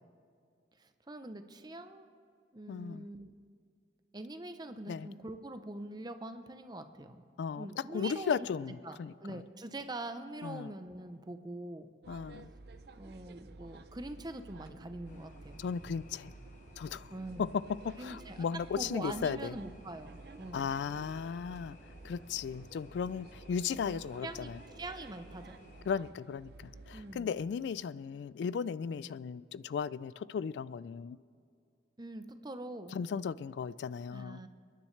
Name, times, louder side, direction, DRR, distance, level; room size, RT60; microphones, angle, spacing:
voice 1, 0.8-2.1 2.5-3.3 4.1-7.2 7.6-8.5 8.8-11.9 13.0-15.6 17.1-17.5 18.0-18.5 18.8-20.7 23.9-25.6 26.9-27.3 29.0-29.1 32.0-33.0 34.1-34.5, right 2 dB, 25° right, 0.7 m, -44 dB
voice 2, 2.7-3.1 4.9-5.1 7.4-7.7 7.9-9.1 10.4-10.7 12.1-12.5 15.6-16.3 16.8-17.1 17.4-17.5 17.8-19.5 20.5-21.8 22.0-24.6 25.9-31.2 32.9-34.4, left 6 dB, 70° left, 0.3 m, -36 dB
sound 1, 12.0-27.2, right 3 dB, 60° right, 0.6 m, -52 dB
sound 2, 15.0-25.8, left 2 dB, 45° left, 1.0 m, -59 dB
29.5 x 10.5 x 3.3 m
head